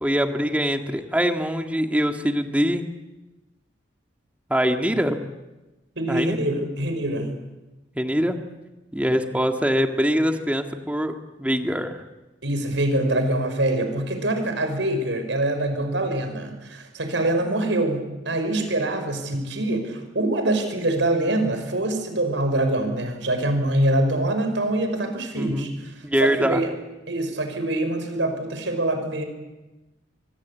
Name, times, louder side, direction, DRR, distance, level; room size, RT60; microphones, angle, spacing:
voice 1, 0.0-2.9 4.5-5.2 6.1-6.4 8.0-8.4 8.9-12.0 25.3-25.7 26.0-26.6, equal, 10° right, 5 dB, 1.8 m, -23 dB
voice 2, 6.0-7.4 12.4-25.9 26.2-26.7 27.1-29.2, right 1 dB, 80° right, 6 dB, 5.6 m, -24 dB
25.0 x 24.0 x 8.5 m, 1.1 s
head